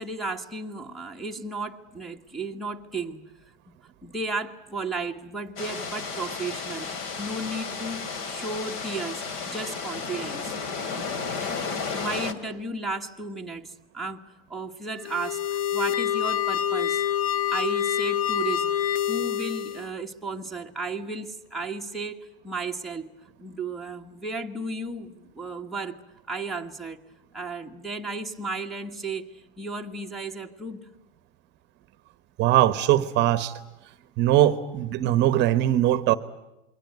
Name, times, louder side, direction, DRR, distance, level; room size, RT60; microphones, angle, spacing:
voice 1, 0.0-3.2 4.0-10.5 11.9-14.2 14.5-17.0 17.5-18.7 19.1-23.1 23.4-26.0 26.3-27.0 27.3-30.9, right 3 dB, ahead, 1.4 m, -34 dB
sound 1, 5.6-12.3, left 5 dB, 45° left, 2.6 m, -33 dB
sound 2, 15.0-19.9, left 10 dB, 75° left, 1.5 m, -26 dB
voice 2, 32.4-33.5 34.2-36.2, right 13 dB, 35° right, 1.1 m, -21 dB
28.0 x 22.5 x 9.4 m
supercardioid pair, 155°, 30 cm